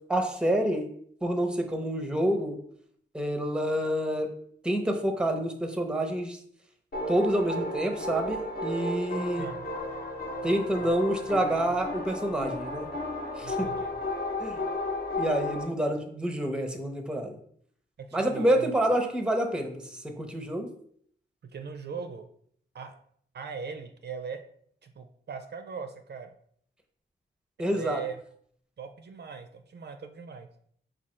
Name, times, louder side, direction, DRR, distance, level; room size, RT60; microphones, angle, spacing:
voice 1, 0.1-0.9 1.2-2.6 3.1-4.3 4.6-6.4 7.1-9.5 10.4-12.9 13.4-13.7 14.4-14.6 15.2-17.4 18.1-20.7 27.6-28.0, right 1 dB, 5° right, 5 dB, 0.6 m, -28 dB
sound 1, 6.9-15.6, left 1 dB, 50° left, 0.8 m, -33 dB
voice 2, 9.4-9.7 10.8-10.9 11.3-11.5 13.4-13.9 18.0-18.7 21.4-22.3 22.7-23.0 23.3-24.4 24.8-26.3 27.6-28.2 28.8-30.5, right 5 dB, 60° right, 7 dB, 0.4 m, -40 dB
4.8 x 2.3 x 4.2 m, 0.64 s
wide cardioid pair, 100°, 20 cm